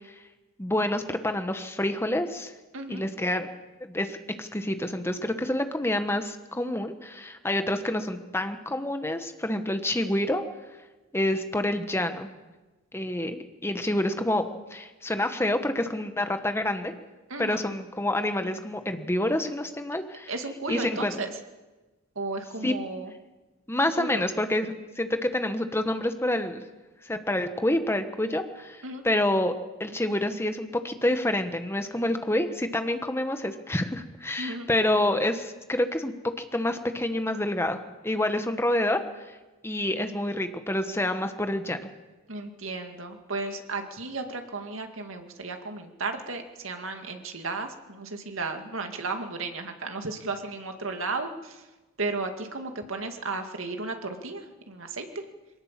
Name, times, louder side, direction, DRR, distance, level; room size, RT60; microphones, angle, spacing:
voice 1, 0.6-2.5 2.9-3.5 3.8-10.4 11.1-12.3 12.9-16.9 17.4-20.3 20.7-21.2 22.6-22.7 23.7-26.6 27.0-29.5 29.8-36.1 36.5-37.8 38.0-39.0 39.6-41.9, left 1 dB, 10° left, 8 dB, 1.2 m, -28 dB
voice 2, 2.7-3.0 17.3-17.6 20.3-21.3 22.2-23.1 24.0-24.2 28.8-29.0 34.4-34.7 42.3-51.6 52.0-55.2, right 3 dB, 75° right, 5 dB, 2.2 m, -34 dB
22.5 x 18.5 x 7.5 m, 1.2 s
head